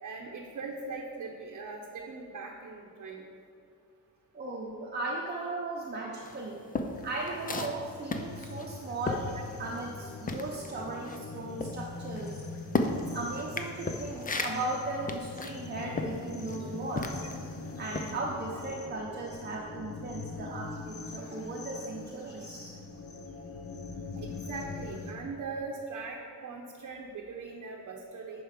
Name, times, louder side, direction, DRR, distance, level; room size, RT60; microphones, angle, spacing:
voice 1, 0.0-3.3 24.1-28.4, right 4 dB, 55° right, 0 dB, 0.9 m, -40 dB
voice 2, 4.3-6.6 7.0-12.4 12.9-17.2 17.8-22.8, right 2 dB, 30° right, -3 dB, 0.9 m, -37 dB
sound 1, 6.2-10.0 10.2-17.5 17.9-18.2, left 3 dB, 25° left, 0.5 m, -35 dB
sound 2, 7.0-25.1, left 4 dB, 40° left, 0.9 m, -43 dB
9.9 x 4.7 x 5.9 m, 2.4 s
wide cardioid pair, 145°, 35 cm